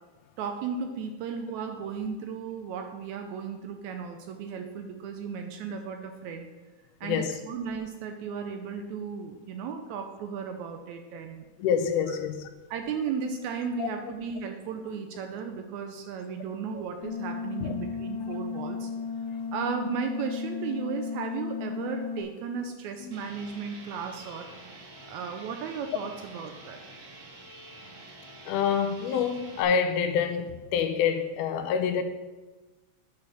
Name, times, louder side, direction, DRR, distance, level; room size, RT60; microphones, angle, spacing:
voice 1, 0.4-6.5 7.0-11.5 12.1-12.2 12.7-18.9 19.5-24.5 25.1-26.8, right 6 dB, 80° right, 1.8 m, -35 dB
voice 2, 7.0-7.3 11.6-12.5 13.8-13.9 17.6-17.8 23.0-23.1 28.5-32.0, left 7 dB, 80° left, 2.2 m, -27 dB
sound 1, 17.0-22.2, left 5 dB, 65° left, 1.4 m, -34 dB
sound 2, 23.1-29.6, right 2 dB, 60° right, 2.5 m, -48 dB
8.4 x 4.7 x 6.2 m
omnidirectional pair, 3.6 m